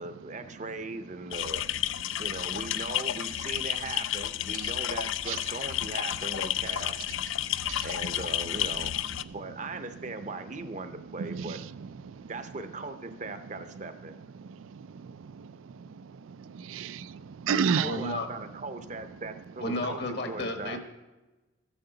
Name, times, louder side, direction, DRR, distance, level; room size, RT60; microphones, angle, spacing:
voice 1, 0.0-1.6 2.2-7.0 7.8-8.9 9.3-11.6 12.3-14.2 17.5-20.8, right 3 dB, 35° right, 0.6 m, -39 dB
sound 1, 1.3-9.2, left 13 dB, 75° left, 0.3 m, -31 dB
voice 2, 7.2-7.9 9.2-9.4 11.1-12.3 14.3-18.0, right 6 dB, 80° right, 0.4 m, -34 dB
voice 3, 17.8-18.3 19.6-20.8, left 1 dB, 55° left, 1.3 m, -32 dB
13.5 x 9.3 x 4.0 m
head